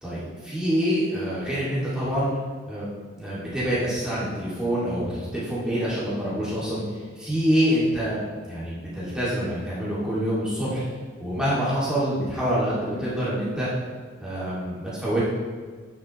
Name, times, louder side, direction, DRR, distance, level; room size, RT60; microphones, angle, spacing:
voice 1, 0.0-2.3 2.7-2.8 3.2-6.8 7.2-8.2 8.4-10.8 11.2-13.7 14.2-15.2, equal, 5° right, -10 dB, 2.1 m, -26 dB
9.6 x 6.5 x 3.0 m, 1.5 s
head